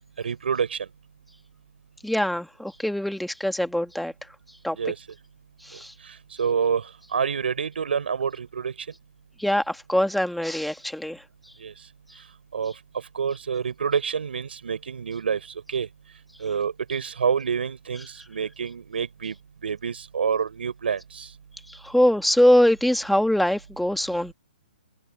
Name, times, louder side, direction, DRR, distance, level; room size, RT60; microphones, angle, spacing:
voice 1, 0.2-0.9 4.7-5.0 6.4-6.8 7.1-8.7 11.6-11.7 12.5-12.7 13.1-15.4 15.7-15.9 16.4-19.3 19.6-21.3, right 6 dB, 80° right, 4.2 m, -27 dB
voice 2, 2.0-4.1 4.6-4.8 5.7-5.9 9.4-11.2 21.7-24.3, left 1 dB, ahead, 1.5 m, -23 dB
hypercardioid pair, 160°, 6 cm